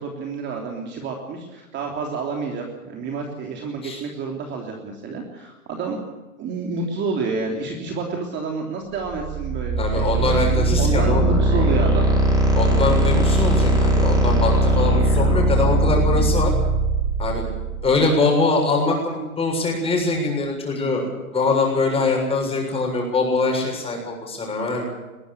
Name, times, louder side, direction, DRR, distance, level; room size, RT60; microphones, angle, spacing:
voice 1, 0.0-6.0 6.4-10.4 10.8-12.1, right 4 dB, 25° right, 1 dB, 3.3 m, -29 dB
sound 1, 9.0-17.9, right 1 dB, 10° right, 5.4 m, -19 dB
voice 2, 9.8-11.2 12.5-16.5 17.2-17.4 17.8-24.9, left 3 dB, 15° left, 1 dB, 7.2 m, -23 dB
22.0 x 16.5 x 8.4 m, 1.1 s
hypercardioid pair, 130°, 44 cm